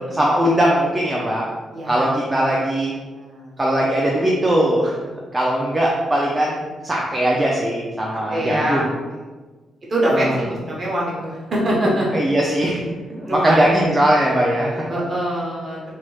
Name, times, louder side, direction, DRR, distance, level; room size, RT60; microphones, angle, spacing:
voice 1, 0.0-1.5 1.9-2.9 3.6-5.0 5.3-8.9 10.1-10.4 12.1-14.9, right 1 dB, 15° right, -4 dB, 0.3 m, -20 dB
voice 2, 1.7-2.7 3.1-3.5 8.1-8.9 9.9-12.2 13.3-13.9 14.9-15.8, right 1 dB, 35° right, -5 dB, 0.9 m, -24 dB
3.1 x 2.9 x 2.3 m, 1.3 s
cardioid pair, 150°, 0 cm